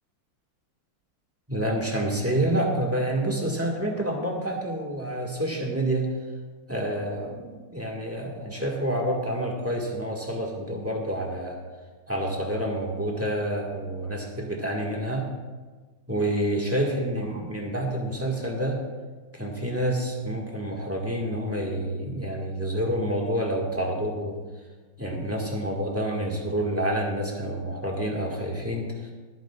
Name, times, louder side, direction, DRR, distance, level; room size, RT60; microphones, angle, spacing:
voice 1, 1.5-6.1 6.7-11.6 12.1-15.3 16.1-18.8 19.3-24.3 25.0-29.1, right 1 dB, 5° right, -1 dB, 1.5 m, -28 dB
27.0 x 9.3 x 2.4 m, 1.3 s
omnidirectional pair, 2.2 m